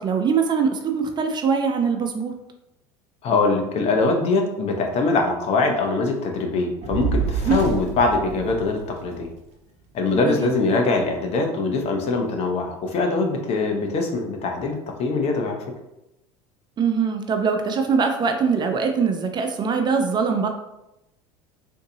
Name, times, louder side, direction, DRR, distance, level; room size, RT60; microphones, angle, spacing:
voice 1, 0.0-2.3 7.5-7.6 10.1-10.5 16.8-20.5, right 5 dB, 30° right, 5 dB, 0.5 m, -22 dB
voice 2, 3.2-9.3 9.9-15.6, left 3 dB, 45° left, 3 dB, 0.7 m, -23 dB
Fire, 6.8-9.3, right 5 dB, 50° right, 0.9 m, -28 dB
3.8 x 2.6 x 2.7 m, 0.90 s
hypercardioid pair, 90°, 15 cm